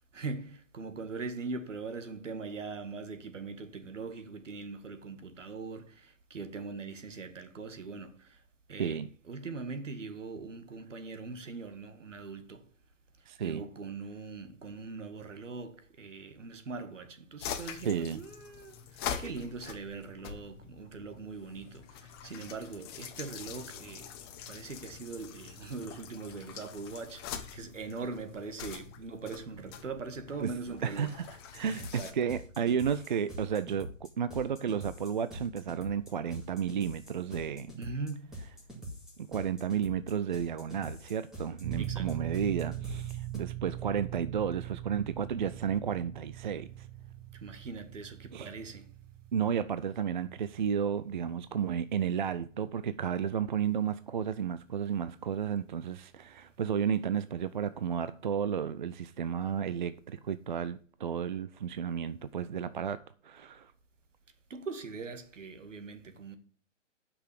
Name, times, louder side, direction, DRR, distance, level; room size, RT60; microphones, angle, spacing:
voice 1, 0.1-8.4 8.7-12.7 13.2-24.1 24.5-31.2 31.8-32.3 32.9-33.2 37.8-38.4 41.8-42.2 47.3-48.9 64.5-66.4, right 4 dB, 70° right, 1.8 m, -41 dB
voice 2, 8.8-9.1 13.3-13.6 17.8-18.2 30.4-30.5 30.8-31.3 31.5-37.7 39.3-46.9 48.3-48.5 49.3-63.7, right 8 dB, 40° right, 0.4 m, -32 dB
sound 1, 17.4-32.1, left 8 dB, 20° left, 0.9 m, -44 dB
sound 2, 31.5-43.4, equal, ahead, 2.0 m, -45 dB
sound 3, 41.6-56.0, right 13 dB, 20° right, 0.8 m, -42 dB
8.1 x 6.1 x 8.1 m
figure-of-eight pair, 140°, 39 cm